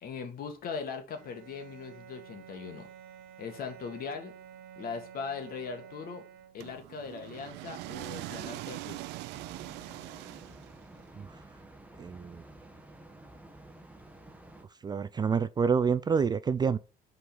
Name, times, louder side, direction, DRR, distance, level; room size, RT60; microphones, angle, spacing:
voice 1, 0.0-2.9 3.4-4.3 4.8-6.2 6.5-9.0, left 5 dB, 60° left, 1.8 m, -39 dB
Bowed string instrument, 1.1-6.9, right 9 dB, 70° right, 1.3 m, -50 dB
sound 1, 6.6-11.0, right 17 dB, 90° right, 0.4 m, -42 dB
sound 2, 9.3-14.6, right 1 dB, 10° right, 1.1 m, -51 dB
voice 2, 12.0-12.4 14.8-16.8, right 6 dB, 25° right, 0.4 m, -27 dB
5.6 x 4.0 x 5.2 m
cardioid pair, 110°, 17 cm